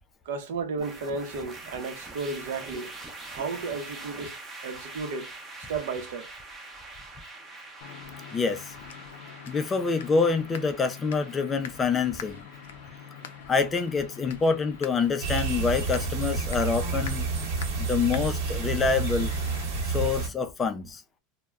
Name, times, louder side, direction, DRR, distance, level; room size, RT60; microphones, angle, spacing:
voice 1, 0.3-2.9 3.3-4.4 4.6-5.3 5.7-6.3, right 4 dB, 80° right, 0.6 m, -33 dB
sound 1, 0.8-20.0, right 3 dB, 20° right, 0.6 m, -46 dB
sound 2, 7.8-19.7, left 8 dB, 90° left, 0.4 m, -44 dB
voice 2, 8.3-8.7 9.5-12.4 13.5-17.3 17.8-19.3 19.9-21.0, left 4 dB, 20° left, 0.3 m, -26 dB
sound 3, 15.2-20.3, right 4 dB, 60° right, 1.0 m, -29 dB
2.1 x 2.1 x 3.4 m
supercardioid pair, 135°, 0 cm